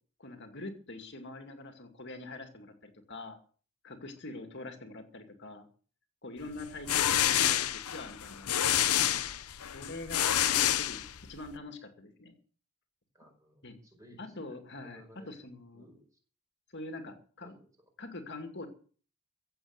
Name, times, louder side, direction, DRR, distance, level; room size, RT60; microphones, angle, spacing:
voice 1, 0.2-3.4 3.8-5.7 6.2-8.9 9.7-11.0 11.3-12.3 13.6-13.8 14.2-15.9 16.7-17.5 18.0-18.7, left 2 dB, 50° left, 5 dB, 2.4 m, -44 dB
sound 1, 6.6-11.5, left 11 dB, 90° left, 0.9 m, -28 dB
voice 2, 13.1-15.3 15.7-16.0 17.4-17.7 18.2-18.3, equal, 15° right, 3 dB, 5.0 m, -59 dB
16.0 x 7.7 x 8.2 m, 0.42 s
head